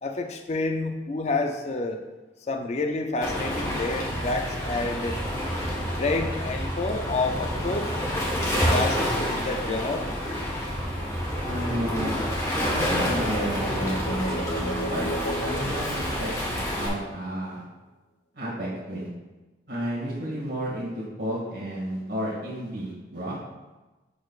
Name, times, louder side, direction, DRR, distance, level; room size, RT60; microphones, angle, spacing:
voice 1, 0.0-2.0 2.4-5.2 5.9-7.9 8.3-10.1, left 3 dB, 35° left, 4 dB, 0.4 m, -29 dB
Waves surf, 3.2-16.9, equal, 15° left, 1.2 m, -28 dB
voice 2, 11.5-12.2 12.6-15.0 15.4-16.3 16.7-17.6 18.3-19.1 19.7-23.4, right 1 dB, 70° right, -6 dB, 1.9 m, -32 dB
sound 1, 12.9-16.7, equal, 75° left, 1.1 m, -35 dB
11.0 x 4.2 x 2.4 m, 1.1 s
head